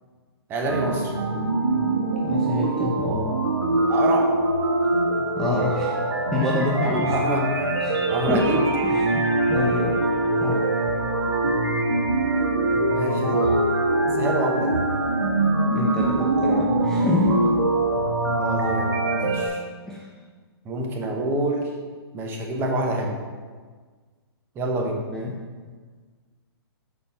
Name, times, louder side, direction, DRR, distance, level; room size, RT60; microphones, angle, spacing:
voice 1, 0.5-1.1 3.9-4.3 6.8-7.8 8.1-8.7 12.9-13.6 14.2-14.9 18.4-19.6 20.6-21.7 22.1-23.1 24.5-25.0, right 2 dB, 15° right, 1 dB, 1.0 m, -26 dB
sound 1, 0.7-19.5, right 2 dB, 80° right, 1.9 m, -23 dB
voice 2, 2.2-3.4 5.4-5.9 6.3-7.1 7.8-8.4 8.9-10.0 10.4-10.6 13.3-13.4 15.7-17.5 19.9-20.1 25.1-25.4, left 2 dB, 5° left, -5 dB, 0.7 m, -27 dB
6.8 x 5.3 x 5.9 m, 1.5 s
hypercardioid pair, 150°, 14 cm